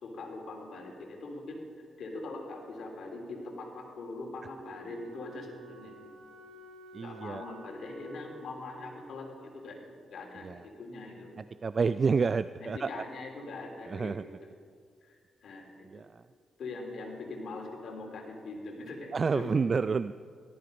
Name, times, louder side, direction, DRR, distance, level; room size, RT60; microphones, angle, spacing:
voice 1, 0.0-6.1 7.0-9.8 10.1-11.3 12.6-14.5 15.0-16.0 16.6-19.6, left 2 dB, 70° left, 1 dB, 3.2 m, -42 dB
Wind instrument woodwind instrument, 4.6-9.0, right 3 dB, 85° right, 2.6 m, -51 dB
voice 2, 6.9-7.4 10.4-10.6 11.6-13.0 13.9-14.2 15.8-16.2 19.1-20.1, right 5 dB, 40° right, 13 dB, 0.3 m, -29 dB
17.5 x 13.0 x 5.2 m, 2.1 s
cardioid pair, 80°, 0 cm